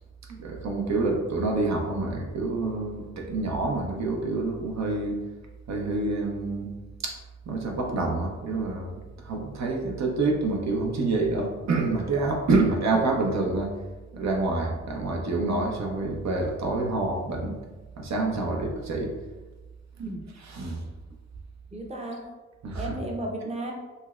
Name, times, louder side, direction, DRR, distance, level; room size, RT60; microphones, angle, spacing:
voice 1, 0.3-5.2 5.7-6.7 7.0-7.2 7.5-13.7 14.1-17.6 18.0-19.1 20.4-20.8 22.6-23.0, right 3 dB, 60° right, 1 dB, 0.8 m, -27 dB
voice 2, 21.7-22.2 22.7-23.7, right 1 dB, 20° right, 0 dB, 0.8 m, -34 dB
5.3 x 2.0 x 2.4 m, 1.2 s
supercardioid pair, 45°, 31 cm